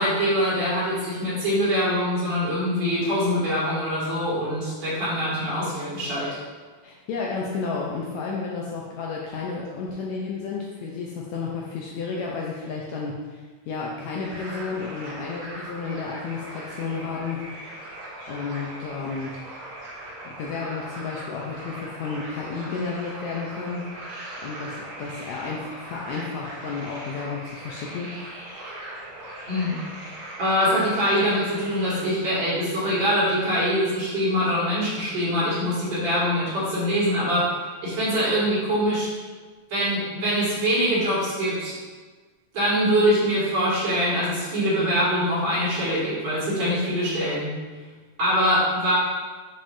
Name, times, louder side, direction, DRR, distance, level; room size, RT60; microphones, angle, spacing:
voice 1, 0.0-6.4 29.5-29.8 30.4-39.1 39.7-41.7 42.5-47.5 48.2-48.9, equal, 50° right, -9 dB, 2.8 m, -23 dB
voice 2, 6.8-13.4 13.7-17.6 18.3-19.4 20.2-23.8 24.4-28.1, left 4 dB, 75° left, -3 dB, 1.7 m, -32 dB
sound 1, 14.2-32.1, right 1 dB, 70° right, 2.4 m, -39 dB
6.9 x 5.3 x 2.6 m, 1.4 s
omnidirectional pair, 3.7 m